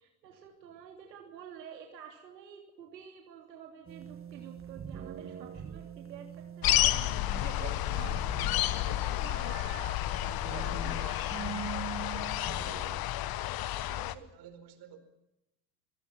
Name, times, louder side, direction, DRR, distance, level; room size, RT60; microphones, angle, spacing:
voice 1, 0.0-11.5, right 8 dB, 75° right, 3.2 m, -50 dB
sound 1, 3.9-13.0, right 8 dB, 25° right, 2.1 m, -44 dB
sound 2, 6.6-14.1, left 14 dB, 45° left, 1.3 m, -31 dB
voice 2, 13.6-15.0, right 8 dB, 50° right, 4.8 m, -52 dB
26.5 x 18.0 x 6.0 m
hypercardioid pair, 75°, 50 cm